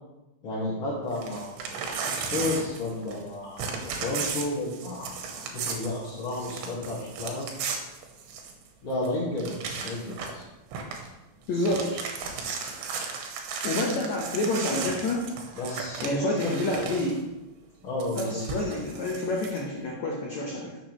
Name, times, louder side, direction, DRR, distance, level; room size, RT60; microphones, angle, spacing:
voice 1, 0.4-1.5 2.1-5.1 5.5-7.5 8.8-10.4 15.6-16.3 16.7-16.9 17.8-18.4, left 2 dB, 45° left, -7 dB, 2.0 m, -32 dB
Crumpling crinkling / Tearing, 1.1-3.3 3.6-8.7 9.0-9.1 9.4-10.4 10.7-11.1 11.4-17.2 18.0-19.6, right 5 dB, 80° right, 3.3 m, -35 dB
voice 2, 11.5-12.0 13.6-15.3 16.0-17.2 18.1-20.8, left 1 dB, 85° left, -2 dB, 1.6 m, -28 dB
11.0 x 7.2 x 3.2 m, 1.0 s
omnidirectional pair, 5.0 m